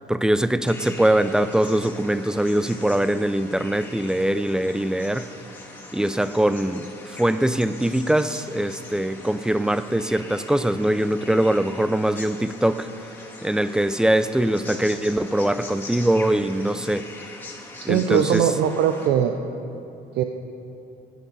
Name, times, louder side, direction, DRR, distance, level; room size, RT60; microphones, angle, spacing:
voice 1, 0.1-5.3 5.9-12.9 13.4-17.1 17.9-18.4, right 1 dB, 5° right, 13 dB, 0.4 m, -22 dB
sound 1, 0.6-19.1, left 2 dB, 10° left, 1.9 m, -42 dB
voice 2, 17.8-19.3 20.1-20.2, right 9 dB, 80° right, 6 dB, 0.6 m, -20 dB
14.5 x 9.2 x 5.4 m, 2.8 s
cardioid pair, 110°, 17 cm